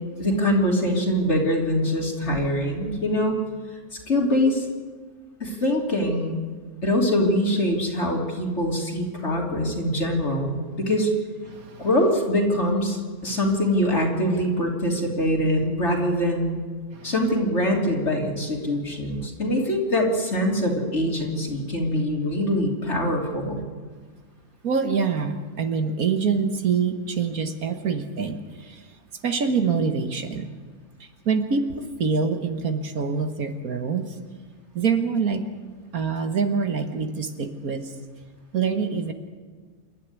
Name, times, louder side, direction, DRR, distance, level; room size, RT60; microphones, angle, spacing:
voice 1, 0.2-3.4 4.1-4.7 5.4-6.4 6.8-11.1 11.8-16.6 17.0-23.7, left 1 dB, 45° left, 0 dB, 3.6 m, -23 dB
voice 2, 11.5-11.9 13.3-13.4 16.9-17.1 24.6-28.9 29.2-30.5 31.0-34.2 34.7-35.5 35.9-38.0 38.5-39.1, right 5 dB, 65° right, 7 dB, 1.8 m, -25 dB
27.5 x 12.5 x 9.6 m, 1.5 s
omnidirectional pair, 1.6 m